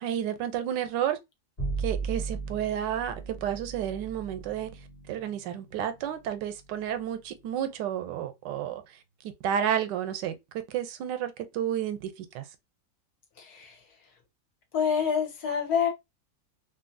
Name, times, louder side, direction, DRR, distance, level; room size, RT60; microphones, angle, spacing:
voice 1, 0.0-1.2 1.8-4.7 5.1-8.8 9.4-10.3 10.7-12.5, right 10 dB, 85° right, 1.2 m, -31 dB
Bowed string instrument, 1.6-8.0, right 4 dB, 35° left, 0.9 m, -38 dB
voice 2, 13.4-14.1 14.7-15.9, left 7 dB, 65° left, 1.3 m, -28 dB
2.9 x 2.6 x 2.5 m
omnidirectional pair, 1.8 m